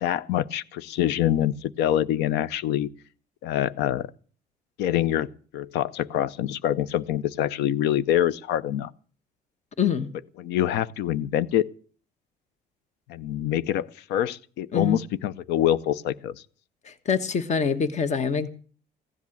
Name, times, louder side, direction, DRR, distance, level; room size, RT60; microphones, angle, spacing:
voice 1, 0.0-2.9 3.4-4.1 4.8-8.9 10.4-11.7 13.1-16.3, left 11 dB, 85° left, 0.7 m, -25 dB
voice 2, 9.8-10.1 14.7-15.0 16.8-18.5, left 6 dB, 45° left, 1.4 m, -25 dB
16.0 x 10.5 x 7.3 m
cardioid pair, 110°, 17 cm